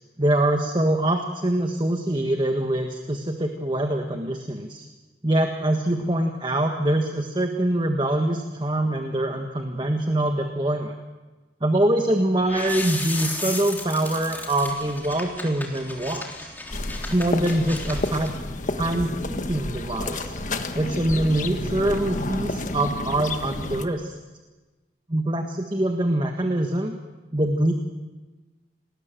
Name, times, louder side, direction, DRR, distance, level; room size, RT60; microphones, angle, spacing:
voice 1, 0.2-4.9 5.2-10.9 11.6-16.5 17.0-18.3 18.8-20.4 20.7-24.1 25.1-27.0 27.3-27.7, right 1 dB, 25° right, 5 dB, 1.6 m, -24 dB
sound 1, 12.5-18.3, left 2 dB, 10° left, 3.4 m, -34 dB
sound 2, 16.7-23.9, left 2 dB, 45° left, 1.5 m, -30 dB
28.5 x 20.0 x 7.7 m, 1.2 s
head